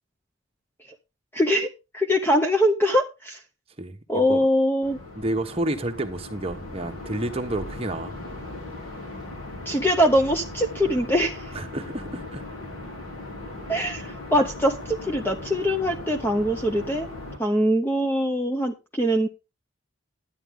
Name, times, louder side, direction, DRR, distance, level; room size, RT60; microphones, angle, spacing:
voice 1, 1.3-1.7 1.9-3.4 4.1-5.0 9.7-11.5 13.7-17.1 17.4-19.3, equal, 10° left, 0.6 m, -22 dB
voice 2, 3.8-4.5 5.2-8.1 11.5-12.4, right 1 dB, 25° right, 1.1 m, -30 dB
sound 1, 4.8-17.4, left 2 dB, 85° left, 4.0 m, -38 dB
11.0 x 9.3 x 3.6 m
head